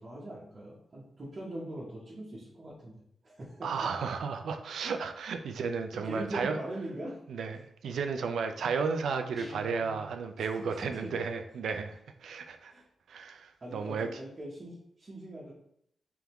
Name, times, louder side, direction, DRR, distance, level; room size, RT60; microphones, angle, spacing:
voice 1, 0.0-2.9 3.2-3.7 5.9-7.2 10.4-10.8 12.7-12.8 13.6-15.5, right 1 dB, 30° right, -6 dB, 0.8 m, -41 dB
voice 2, 3.6-6.6 7.3-12.7 13.1-14.1, right 5 dB, 75° right, 6 dB, 0.3 m, -33 dB
Guitar, 9.3-10.1, right 2 dB, 15° left, 1.2 m, -47 dB
3.5 x 3.4 x 2.9 m, 0.71 s
wide cardioid pair, 145°, 0 cm